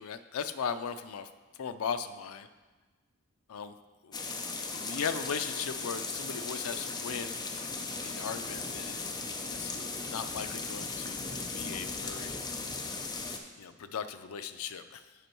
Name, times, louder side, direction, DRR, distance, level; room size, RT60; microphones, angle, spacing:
voice 1, 0.0-2.5 3.5-3.8 4.0-4.2 4.5-7.4 8.0-9.0 9.4-12.4 13.6-15.1, left 6 dB, 80° left, 11 dB, 0.4 m, -38 dB
sound 1, 4.1-13.4, left 3 dB, 20° left, 0.5 m, -37 dB
8.1 x 5.3 x 4.5 m, 1.3 s
head